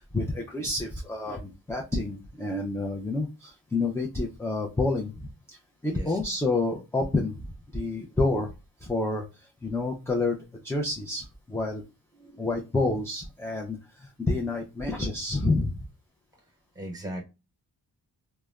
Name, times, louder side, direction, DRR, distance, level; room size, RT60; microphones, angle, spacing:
voice 1, 0.1-5.6 5.8-8.5 8.8-11.8 12.4-15.8, left 2 dB, 5° left, 0.4 m, -29 dB
voice 2, 12.2-12.5 16.7-17.2, right 1 dB, 10° right, 1.0 m, -38 dB
3.2 x 2.1 x 2.3 m
wide cardioid pair, 100°, 41 cm